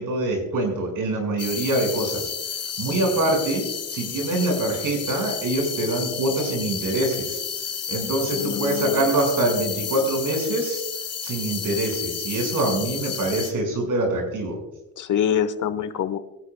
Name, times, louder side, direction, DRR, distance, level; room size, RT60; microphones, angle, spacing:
voice 1, 0.0-2.3 2.8-7.4 7.9-10.8 11.2-14.6, right 2 dB, 70° right, 2 dB, 5.5 m, -24 dB
sound 1, 1.4-13.5, left 7 dB, 45° left, 2.0 m, -31 dB
voice 2, 8.3-9.1 12.8-12.9 15.0-16.2, left 9 dB, 65° left, 11 dB, 1.1 m, -25 dB
23.5 x 11.0 x 2.3 m, 0.94 s
cardioid pair, 85°, 33 cm